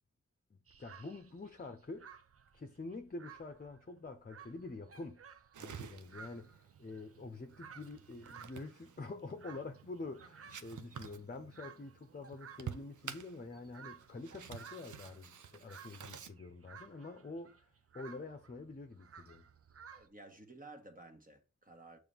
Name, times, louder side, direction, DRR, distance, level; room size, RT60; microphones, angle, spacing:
sound 1, 0.7-20.1, right 7 dB, 50° right, 0.6 m, -57 dB
voice 1, 0.8-2.1 2.5-5.2 5.6-17.6 17.9-19.5, left 3 dB, 30° left, 0.8 m, -47 dB
sound 2, 5.5-16.3, right 8 dB, 90° right, 0.7 m, -51 dB
voice 2, 19.9-22.0, right 2 dB, 30° right, 1.4 m, -54 dB
6.9 x 3.4 x 5.4 m
wide cardioid pair, 75°, 29 cm